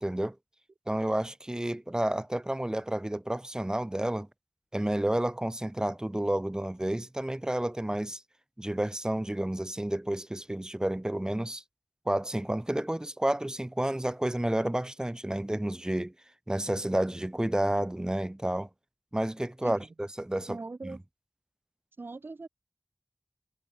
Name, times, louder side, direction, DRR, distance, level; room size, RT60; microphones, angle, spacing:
voice 1, 0.0-0.4 0.9-4.3 4.7-8.2 8.6-11.6 12.1-16.1 16.5-18.7 19.1-20.6 20.8-21.0, right 1 dB, 20° right, 2.0 m, -30 dB
voice 2, 20.5-21.0 22.0-22.5, right 3 dB, 70° right, 6.1 m, -40 dB
wide cardioid pair, 65°, 4 cm